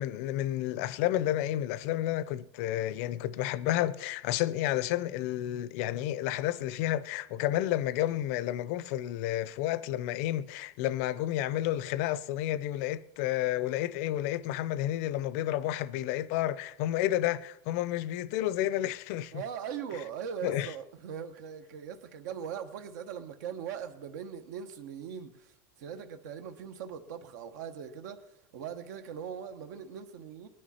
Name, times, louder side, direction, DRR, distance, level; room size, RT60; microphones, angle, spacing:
voice 1, 0.0-19.4 20.4-20.7, left 13 dB, 55° left, 0.5 m, -31 dB
voice 2, 19.3-25.5 25.8-28.2 28.5-30.5, right 8 dB, 85° right, 1.1 m, -40 dB
19.5 x 9.9 x 4.2 m
supercardioid pair, 170°, 9 cm